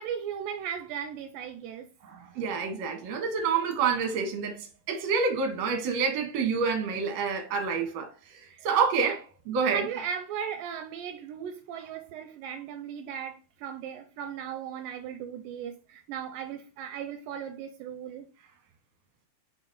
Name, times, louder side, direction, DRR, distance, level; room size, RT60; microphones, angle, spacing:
voice 1, 0.0-1.9 8.4-8.7 9.0-9.2 9.7-18.3, right 8 dB, 80° right, 2.2 m, -37 dB
voice 2, 2.0-9.2 9.5-9.9, right 5 dB, 55° right, 2.3 m, -28 dB
6.5 x 4.0 x 4.1 m
omnidirectional pair, 4.2 m